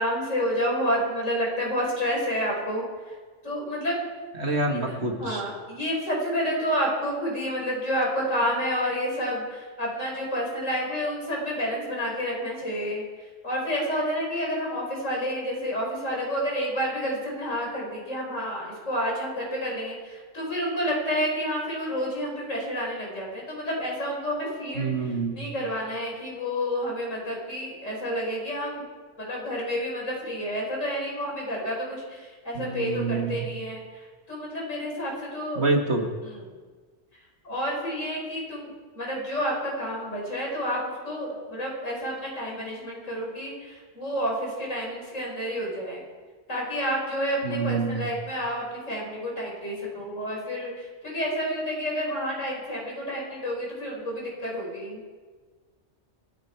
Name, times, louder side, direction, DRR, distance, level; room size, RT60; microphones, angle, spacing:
voice 1, 0.0-2.8 3.4-4.0 4.7-4.8 5.2-13.0 13.4-24.9 25.3-28.8 29.2-33.8 34.3-35.7 36.2-36.5 37.4-46.0 46.5-50.7 51.0-55.0, equal, 85° left, -2 dB, 5.7 m, -29 dB
voice 2, 4.4-5.4 24.8-25.4 32.5-33.4 35.6-36.1 47.4-48.1, right 3 dB, 60° right, 2 dB, 2.2 m, -27 dB
27.0 x 10.5 x 4.8 m, 1.4 s
omnidirectional pair, 1.3 m